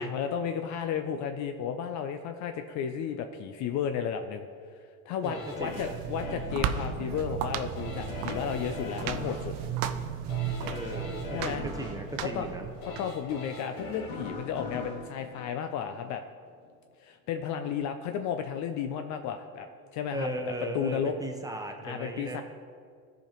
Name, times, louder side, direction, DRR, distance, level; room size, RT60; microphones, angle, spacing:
voice 1, 0.0-4.5 5.1-9.5 11.3-11.7 12.2-12.5 12.8-16.2 17.0-19.7 19.9-21.1 21.8-22.4, left 8 dB, 40° left, 7 dB, 0.5 m, -33 dB
sound 1, 5.2-16.2 16.6-16.7, left 3 dB, 75° left, 1.4 m, -41 dB
voice 2, 5.2-5.9 10.7-12.7 20.1-22.4, right 1 dB, 10° right, 3 dB, 0.9 m, -37 dB
sound 2, 5.5-13.0, right 9 dB, 50° right, 0.6 m, -35 dB
14.0 x 5.1 x 3.0 m, 2.1 s
hypercardioid pair, 90°, 44 cm